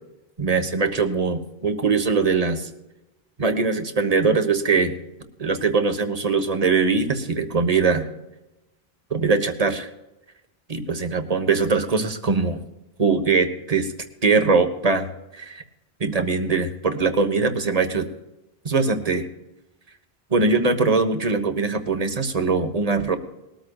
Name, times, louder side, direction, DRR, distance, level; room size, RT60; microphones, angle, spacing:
voice 1, 0.4-2.7 3.4-4.9 5.4-8.1 9.1-9.9 10.7-12.6 13.0-13.9 14.2-15.1 15.3-15.6 16.0-18.1 18.6-19.2 20.3-23.2, right 4 dB, 40° right, 7 dB, 1.3 m, -21 dB
21.0 x 13.5 x 2.4 m, 0.96 s
omnidirectional pair, 1.1 m